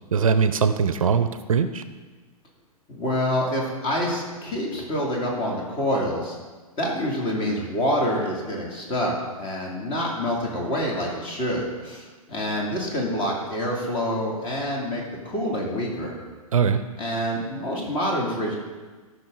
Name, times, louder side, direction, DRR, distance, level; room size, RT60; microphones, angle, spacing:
voice 1, 0.1-1.8 16.5-16.8, right 6 dB, 65° right, 11 dB, 0.6 m, -21 dB
voice 2, 2.9-6.4 6.8-9.1 9.4-16.2 17.0-18.5, equal, 25° left, -1 dB, 2.5 m, -27 dB
13.5 x 6.0 x 3.8 m, 1.3 s
figure-of-eight pair, 110°, 19 cm